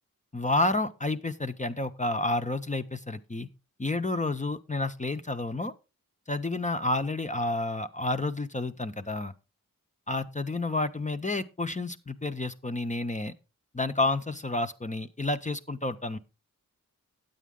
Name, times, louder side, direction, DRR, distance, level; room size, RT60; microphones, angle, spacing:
voice 1, 0.3-3.5 3.8-5.7 6.3-9.3 10.1-13.3 13.7-16.2, left 2 dB, 20° left, 0.6 m, -30 dB
9.1 x 8.3 x 3.6 m
wide cardioid pair, 70°, 34 cm